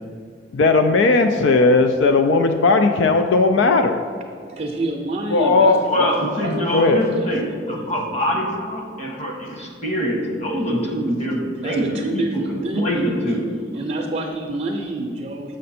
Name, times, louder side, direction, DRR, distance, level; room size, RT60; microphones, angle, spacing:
voice 1, 0.5-4.0 5.3-6.2 6.7-7.1, left 3 dB, 75° left, 6 dB, 0.4 m, -17 dB
voice 2, 4.5-6.1 6.4-6.7 7.1-7.2 11.6-13.1 13.7-15.6, right 2 dB, 35° right, 1 dB, 0.5 m, -27 dB
voice 3, 5.9-13.4, equal, 35° left, 0 dB, 1.2 m, -24 dB
6.6 x 6.3 x 4.2 m, 2.2 s
head